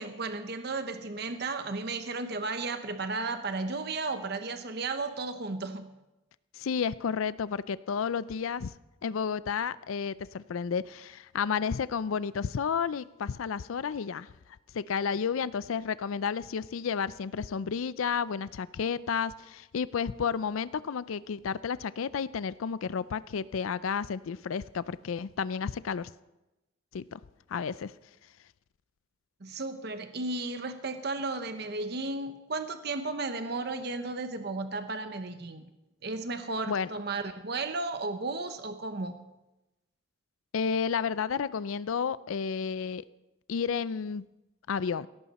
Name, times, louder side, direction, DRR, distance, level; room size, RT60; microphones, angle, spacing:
voice 1, 0.0-5.9 29.4-35.6 36.0-39.2, right 3 dB, 55° right, 8 dB, 0.9 m, -34 dB
voice 2, 6.5-8.7 9.0-14.3 14.7-26.1 26.9-27.2 27.5-27.9 36.7-36.9 40.5-43.0 43.5-44.3 44.7-45.1, left 6 dB, 90° left, 17 dB, 0.4 m, -31 dB
17.0 x 14.5 x 4.2 m, 0.98 s
head